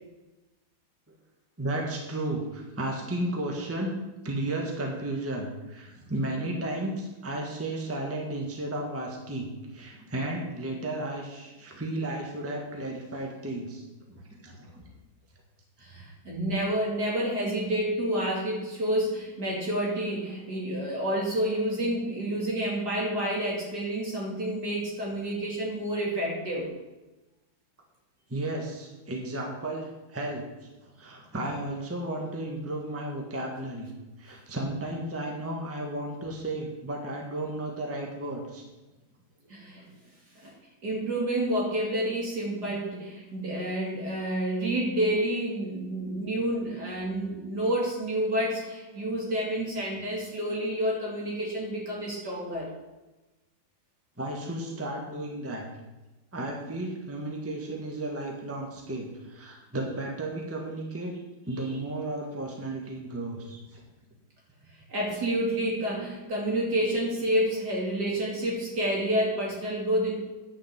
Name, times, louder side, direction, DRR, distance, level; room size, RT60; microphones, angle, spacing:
voice 1, 1.6-14.1 14.4-14.8 28.3-30.4 31.0-33.9 34.2-38.6 54.2-55.6 56.3-61.1 61.5-63.8, right 1 dB, 10° right, 0 dB, 1.4 m, -33 dB
voice 2, 15.8-26.7 39.5-39.9 40.3-40.5 40.8-52.7 64.9-70.1, right 1 dB, 55° right, -3 dB, 3.3 m, -29 dB
9.9 x 5.7 x 8.0 m, 1.1 s
omnidirectional pair, 2.1 m